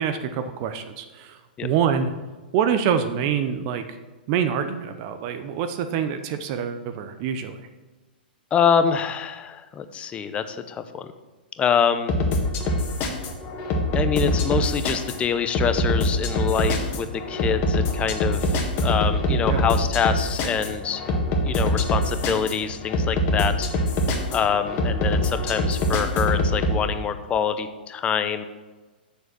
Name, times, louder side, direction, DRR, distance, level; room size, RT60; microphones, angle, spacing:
voice 1, 0.0-2.1 2.5-4.0 4.3-7.7 19.3-19.6, right 8 dB, 45° right, 8 dB, 0.7 m, -26 dB
voice 2, 8.5-11.1 11.6-12.1 13.9-21.0 21.4-23.7 24.3-28.4, left 7 dB, 20° left, 10 dB, 0.7 m, -25 dB
sound 1, 12.1-26.8, left 1 dB, 35° left, 1.6 m, -24 dB
7.0 x 6.5 x 6.2 m, 1.2 s
hypercardioid pair, 115°, 5 cm